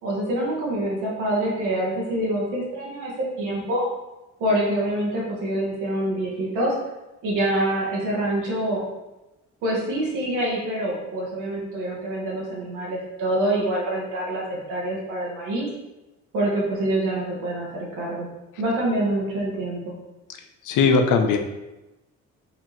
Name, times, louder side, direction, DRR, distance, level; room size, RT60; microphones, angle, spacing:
voice 1, 0.0-3.1 3.4-3.8 4.4-6.7 7.2-8.8 9.6-15.7 16.3-18.3 18.6-19.9, right 1 dB, 90° right, -4 dB, 1.1 m, -26 dB
voice 2, 20.7-21.4, left 4 dB, 80° left, 5 dB, 0.5 m, -18 dB
4.1 x 2.7 x 3.1 m, 1.0 s
cardioid pair, 90°, 30 cm